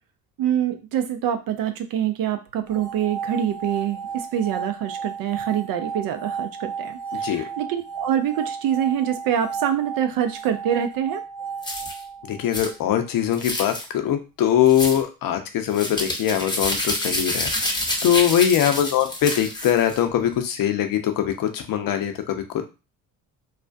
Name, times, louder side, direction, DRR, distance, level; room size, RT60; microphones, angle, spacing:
voice 1, 0.4-11.2, right 9 dB, 50° right, 8 dB, 0.5 m, -25 dB
sound 1, 2.7-12.8, right 6 dB, 5° right, 1.2 m, -33 dB
voice 2, 7.1-7.4 12.3-22.6, left 10 dB, 50° left, 7 dB, 0.6 m, -22 dB
sound 2, 11.6-12.0 12.5-12.7 13.3-13.9 14.7-15.0 15.7-20.0, left 1 dB, 10° left, 0.8 m, -27 dB
2.4 x 2.1 x 2.5 m, 0.30 s
hypercardioid pair, 60°, 44 cm